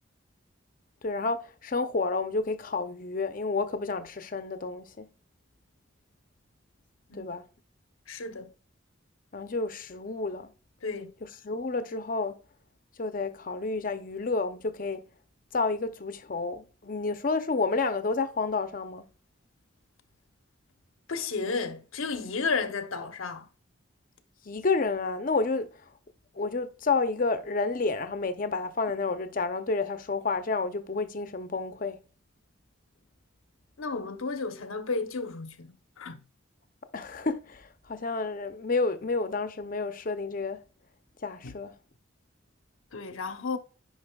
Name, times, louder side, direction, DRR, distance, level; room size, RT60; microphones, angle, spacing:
voice 1, 1.0-5.1 7.1-7.5 9.3-10.5 11.4-12.4 13.0-15.0 15.5-19.0 24.5-25.7 26.4-32.0 36.9-40.6 41.2-41.8, left 3 dB, 40° left, 0.6 m, -30 dB
voice 2, 8.1-8.5 10.8-11.1 21.1-23.5 33.8-36.2 41.4-41.5 42.9-43.6, left 4 dB, 85° left, 0.9 m, -33 dB
9.7 x 5.3 x 2.3 m
head